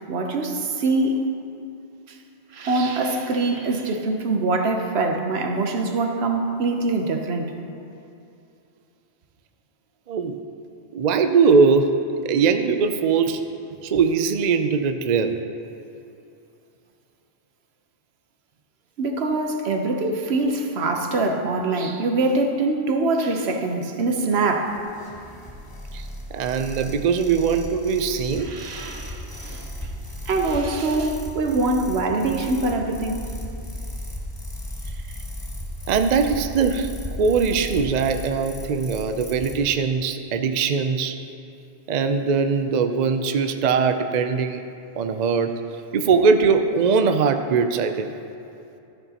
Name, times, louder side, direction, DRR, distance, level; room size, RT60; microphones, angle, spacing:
voice 1, 0.1-1.3 2.5-7.6 19.0-24.8 28.4-29.7 30.3-33.3, right 2 dB, 70° right, 1.1 m, -24 dB
voice 2, 10.1-10.4 10.9-13.4 13.8-15.3 25.9-26.1 26.3-28.5 35.9-41.2 41.9-44.6 45.0-45.6 45.9-48.1, right 5 dB, 55° right, 0.5 m, -21 dB
sound 1, 24.2-39.6, left 1 dB, 20° left, 1.0 m, -35 dB
13.0 x 11.0 x 2.9 m
omnidirectional pair, 1.1 m